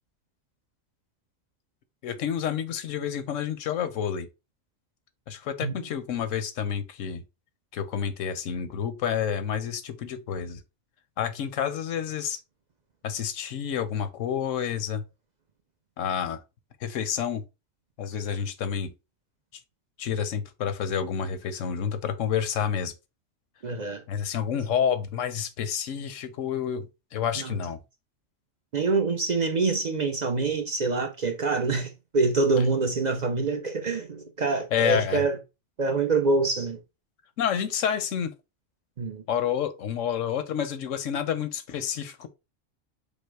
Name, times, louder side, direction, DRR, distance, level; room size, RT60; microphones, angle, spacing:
voice 1, 2.0-4.3 5.3-7.2 7.7-10.6 11.2-12.4 13.0-15.0 16.0-16.4 16.8-17.4 18.0-18.9 20.0-22.9 24.1-26.9 27.1-27.8 34.7-35.2 37.4-38.3 39.3-42.3, left 8 dB, 90° left, 1.1 m, -29 dB
voice 2, 23.6-24.0 27.4-27.6 28.7-35.4 35.8-36.8 39.0-39.2, right 3 dB, 50° right, 0.6 m, -25 dB
5.4 x 2.0 x 4.6 m
omnidirectional pair, 1.3 m